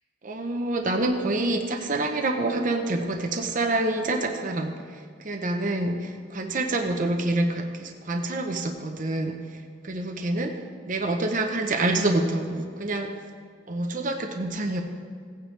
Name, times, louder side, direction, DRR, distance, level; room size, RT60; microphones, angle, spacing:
voice 1, 0.2-4.7 5.2-9.3 9.8-10.5 10.9-13.1 13.7-14.8, right 2 dB, 45° right, 4 dB, 0.8 m, -27 dB
16.5 x 9.1 x 3.3 m, 2.1 s
head